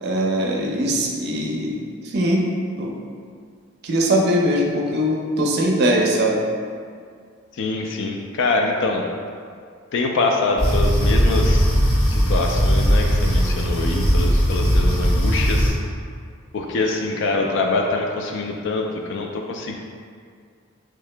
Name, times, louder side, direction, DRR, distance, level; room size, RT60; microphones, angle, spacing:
voice 1, 0.0-1.8 2.0-2.4 2.8-2.9 3.8-6.4, equal, 50° right, 0 dB, 0.5 m, -21 dB
voice 2, 7.5-9.0 9.9-11.7 12.1-15.8 16.5-19.8, left 3 dB, 60° left, 1 dB, 0.3 m, -24 dB
sound 1, 10.6-15.7, equal, 90° left, 1.2 m, -18 dB
3.4 x 2.8 x 3.2 m, 2.2 s
head